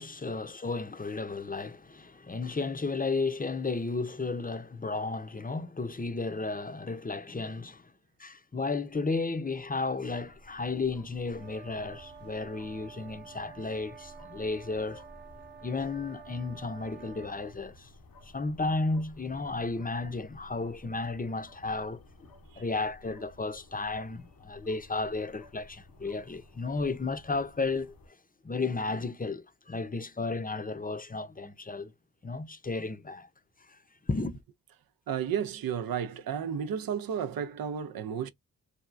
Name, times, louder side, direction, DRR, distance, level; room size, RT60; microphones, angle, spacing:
voice 1, 0.0-7.9 8.2-15.0 15.6-17.9 18.2-27.9 28.4-31.9 32.2-33.3 33.7-33.8 34.1-34.4, left 3 dB, 25° left, 0.6 m, -33 dB
sound 1, 9.7-28.1, left 1 dB, 75° left, 0.8 m, -55 dB
sound 2, 11.3-17.6, right 7 dB, 30° right, 0.6 m, -50 dB
voice 2, 35.1-38.3, right 8 dB, 75° right, 0.5 m, -32 dB
3.3 x 2.2 x 2.4 m
cardioid pair, 45°, 35 cm